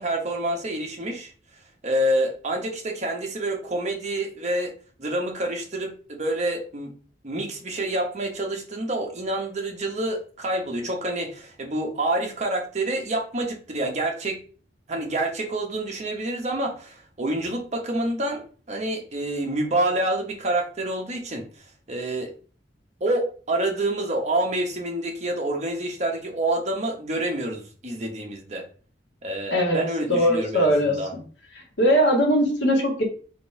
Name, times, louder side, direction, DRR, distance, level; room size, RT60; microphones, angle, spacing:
voice 1, 0.0-1.3 1.8-4.7 5.0-6.9 7.2-14.4 14.9-21.5 21.9-22.3 23.0-28.7 29.2-31.1, right 1 dB, 40° right, 1 dB, 1.0 m, -27 dB
voice 2, 29.5-29.8 30.1-31.2 31.5-33.0, equal, 85° left, 0 dB, 1.6 m, -21 dB
3.8 x 2.6 x 4.6 m, 0.41 s
head